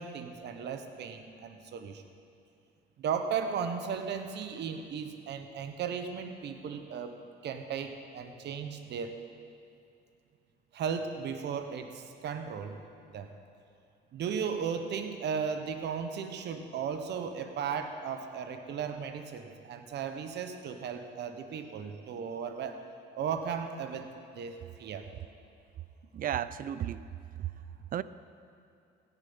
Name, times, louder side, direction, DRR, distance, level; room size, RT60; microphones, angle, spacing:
voice 1, 0.0-2.0 3.0-7.2 7.4-9.2 10.7-12.8 13.1-13.3 14.1-22.8 23.2-24.1 24.3-25.1, right 6 dB, 65° right, 7 dB, 1.2 m, -36 dB
voice 2, 26.1-27.0 27.4-27.5 27.9-28.0, right 10 dB, 50° right, 16 dB, 0.5 m, -33 dB
16.5 x 7.3 x 5.6 m, 2.5 s
cardioid pair, 85°, 19 cm